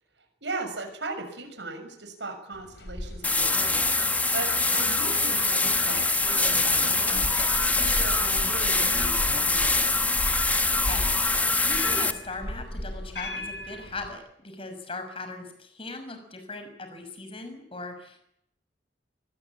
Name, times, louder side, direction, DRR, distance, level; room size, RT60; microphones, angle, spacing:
voice 1, 0.4-7.2 7.8-9.9, right 3 dB, 75° right, 4 dB, 6.7 m, -37 dB
sound 1, 2.5-14.1, left 1 dB, 65° left, 4.7 m, -37 dB
sound 2, 3.2-12.1, left 3 dB, 10° left, 1.3 m, -24 dB
voice 2, 10.8-18.2, left 3 dB, 30° left, 7 dB, 5.9 m, -39 dB
24.5 x 20.5 x 8.7 m, 0.74 s
head